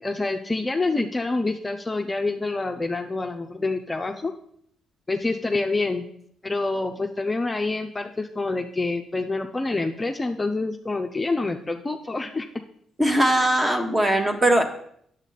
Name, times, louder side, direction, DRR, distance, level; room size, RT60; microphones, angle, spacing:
voice 1, 0.0-4.3 5.1-6.0 6.4-12.5, left 3 dB, 20° left, 3 dB, 0.6 m, -27 dB
voice 2, 13.0-14.6, right 1 dB, 15° right, 6 dB, 1.2 m, -20 dB
9.0 x 7.3 x 4.0 m, 0.68 s
cardioid pair, 90°, 0 cm